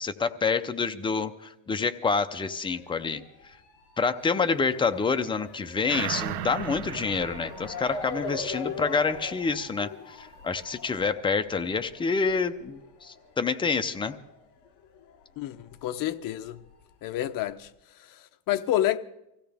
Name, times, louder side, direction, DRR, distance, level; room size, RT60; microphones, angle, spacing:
voice 1, 0.0-3.2 4.0-14.2, left 5 dB, 10° left, 0.5 m, -27 dB
Motor vehicle (road) / Siren, 2.2-15.2 15.5-16.7 17.3-17.4 17.7-17.8, left 4 dB, 60° left, 3.3 m, -42 dB
sound 1, 5.9-8.8 9.2-9.3, right 14 dB, 90° right, 1.0 m, -36 dB
voice 2, 15.4-16.6 17.0-17.7 18.0-19.0, left 13 dB, 45° left, 0.8 m, -29 dB
24.5 x 16.0 x 3.4 m
cardioid pair, 135°, 48 cm